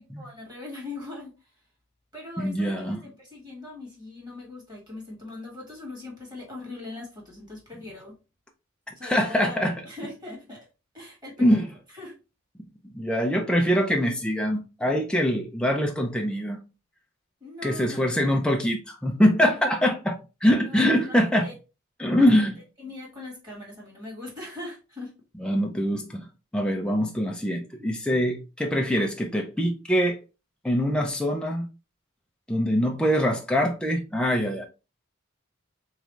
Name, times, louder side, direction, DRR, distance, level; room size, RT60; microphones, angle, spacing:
voice 1, 0.2-1.3 2.1-8.1 9.0-10.6 10.9-11.7 11.9-12.2 13.1-13.2 17.4-18.3 20.6-21.5 22.2-22.5 22.8-25.1, left 2 dB, 20° right, 1.9 m, -41 dB
voice 2, 2.4-3.0 9.0-9.7 11.4-11.7 12.9-16.6 17.6-21.5 22.0-22.5 25.4-26.3 26.5-30.2 30.6-31.7 32.5-34.7, equal, 5° left, 0.5 m, -23 dB
3.7 x 3.2 x 3.1 m
head